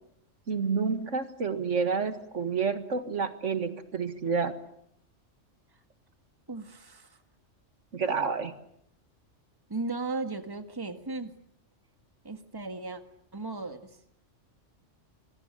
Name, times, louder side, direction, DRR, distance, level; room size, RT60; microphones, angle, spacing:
voice 1, 0.5-4.6 7.9-8.5, right 5 dB, 75° right, 9 dB, 2.1 m, -29 dB
voice 2, 6.5-7.2 9.7-11.3 12.2-13.0 13.3-14.0, right 3 dB, 20° right, 8 dB, 1.8 m, -36 dB
26.0 x 21.5 x 8.9 m, 0.71 s
omnidirectional pair, 1.3 m